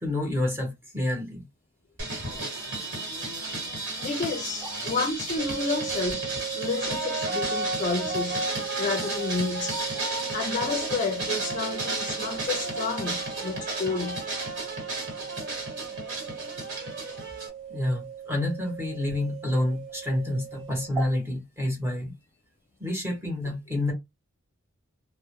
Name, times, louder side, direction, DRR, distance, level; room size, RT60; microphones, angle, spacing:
voice 1, 0.0-1.4 3.9-4.1 4.6-4.7 9.9-10.1 17.7-22.1 22.8-23.9, left 1 dB, 10° right, 1.0 m, -28 dB
sound 1, 2.0-17.5, right 2 dB, 60° right, 1.3 m, -33 dB
voice 2, 4.0-6.3 6.6-8.4 8.8-9.8 10.3-14.2, left 4 dB, 40° left, 0.4 m, -30 dB
sound 2, 5.4-20.9, right 9 dB, 30° right, 1.0 m, -38 dB
2.1 x 2.1 x 2.9 m
head